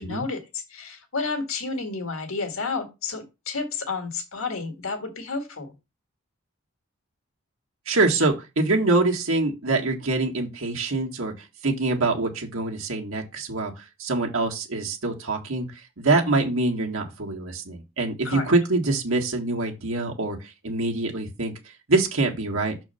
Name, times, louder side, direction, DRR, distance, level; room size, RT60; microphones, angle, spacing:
voice 1, 0.0-5.7 16.1-16.5 18.2-18.5, left 4 dB, 75° left, 1.9 m, -31 dB
voice 2, 7.9-11.3 11.6-15.7 16.0-20.4 20.6-21.5 21.9-22.7, right 2 dB, 70° right, 1.8 m, -24 dB
6.5 x 4.5 x 5.7 m
head